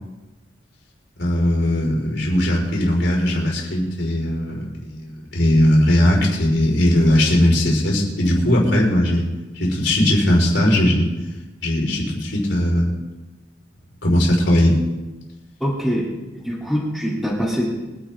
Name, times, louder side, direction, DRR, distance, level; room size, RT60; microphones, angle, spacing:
voice 1, 1.2-9.3 9.5-11.1 11.6-13.0 14.0-14.8, left 1 dB, 80° left, -2 dB, 4.8 m, -18 dB
voice 2, 15.6-16.1 16.3-17.7, equal, ahead, -7 dB, 3.5 m, -23 dB
25.0 x 10.0 x 3.8 m, 1.1 s
head